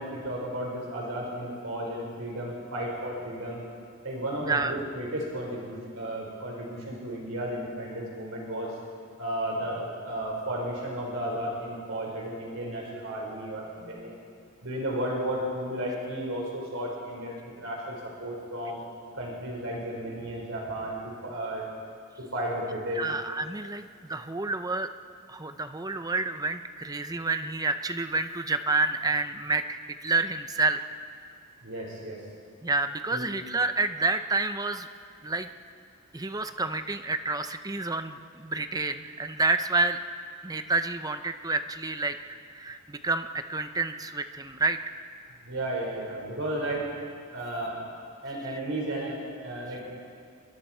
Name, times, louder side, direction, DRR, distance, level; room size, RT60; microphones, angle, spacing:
voice 1, 0.0-3.7 4.0-8.7 9.2-14.1 14.6-18.8 19.1-21.6 22.2-23.1 31.6-32.2 33.1-33.3 45.4-46.9 47.3-47.8 48.2-49.8, right 1 dB, 65° right, -2 dB, 4.8 m, -33 dB
voice 2, 22.9-24.9 25.3-30.8 32.6-34.9 35.2-35.5 36.1-40.0 40.4-45.0, right 3 dB, 15° right, 9 dB, 0.7 m, -29 dB
29.0 x 23.0 x 4.5 m, 2.3 s
head